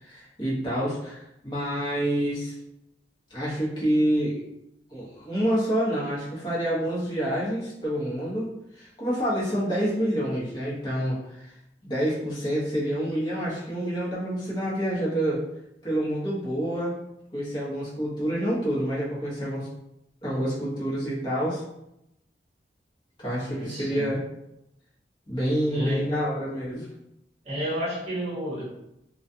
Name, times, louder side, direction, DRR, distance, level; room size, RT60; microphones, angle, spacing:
voice 1, 0.0-2.5 3.3-4.4 4.9-8.4 8.7-11.5 11.8-15.4 15.8-16.9 17.3-19.7 20.2-21.6 23.2-24.2 25.3-26.9, equal, 25° left, -8 dB, 0.9 m, -27 dB
voice 2, 23.5-24.1 25.7-26.0 27.4-28.6, equal, 40° right, -7 dB, 1.0 m, -30 dB
2.3 x 2.2 x 2.6 m, 0.84 s
head